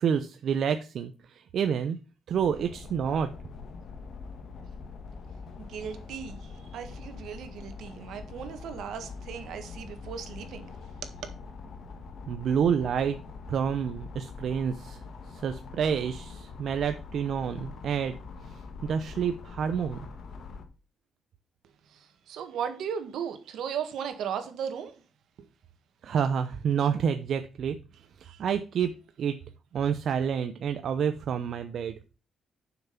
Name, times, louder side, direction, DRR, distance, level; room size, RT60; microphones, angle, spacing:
voice 1, 0.0-2.0 2.3-3.3 12.3-13.2 13.5-15.0 15.3-18.2 18.8-20.1 26.0-27.8 28.4-28.9 29.2-29.3 29.7-31.9, right 7 dB, 65° right, 0.6 m, -28 dB
sound 1, 2.3-20.6, left 4 dB, 60° left, 1.5 m, -44 dB
voice 2, 5.6-10.7 11.2-11.3 21.9-25.0 28.2-28.4, right 8 dB, 80° right, 1.5 m, -36 dB
7.1 x 5.9 x 5.8 m
cardioid pair, 110°, 0 cm